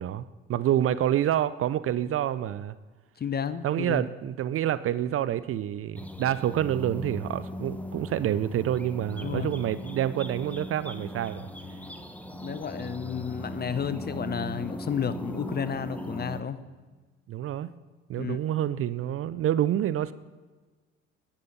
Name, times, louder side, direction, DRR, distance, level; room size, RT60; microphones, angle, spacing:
voice 1, 0.0-2.7 3.6-11.5 17.3-17.7 18.1-20.1, right 11 dB, 45° right, 16 dB, 0.5 m, -28 dB
voice 2, 3.2-4.0 9.2-9.5 12.4-16.6 18.2-18.4, left 7 dB, 30° left, 13 dB, 0.7 m, -32 dB
sound 1, 5.9-16.4, equal, 5° left, 1.0 m, -38 dB
9.9 x 8.5 x 5.3 m, 1.3 s
hypercardioid pair, 55°, 33 cm